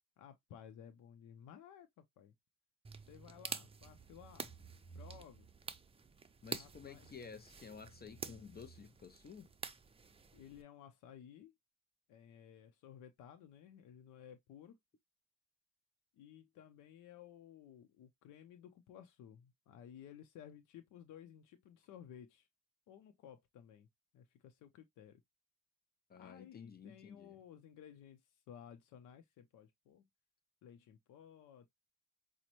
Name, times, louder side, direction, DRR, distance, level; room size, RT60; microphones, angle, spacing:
voice 1, 0.2-1.9 2.2-2.3 3.1-4.5 4.9-5.5 6.5-7.1 10.3-11.5 12.1-14.8 16.2-22.5 22.9-23.9 24.1-25.2 26.2-28.2 28.5-30.1 30.6-31.7, left 9 dB, 85° left, 0.6 m, -56 dB
sound 1, 2.8-10.6, right 5 dB, 20° right, 0.5 m, -49 dB
voice 2, 6.4-9.5 26.1-27.4, left 6 dB, 30° left, 0.5 m, -52 dB
5.0 x 2.1 x 2.9 m
cardioid pair, 90°, 30 cm